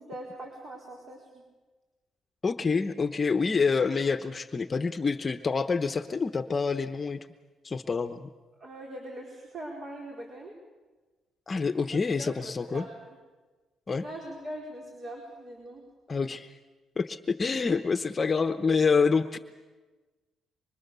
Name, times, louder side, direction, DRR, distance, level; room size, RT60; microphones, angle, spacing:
voice 1, 0.0-1.4 8.6-10.6 11.9-13.2 14.0-15.9, right 1 dB, 45° right, 0 dB, 4.6 m, -42 dB
voice 2, 2.4-7.2 7.6-8.3 11.5-12.8 13.9-14.0 16.1-16.6 17.0-19.4, left 5 dB, 35° left, 9 dB, 0.9 m, -27 dB
25.0 x 24.5 x 6.9 m, 1.3 s
cardioid pair, 90°, 0 cm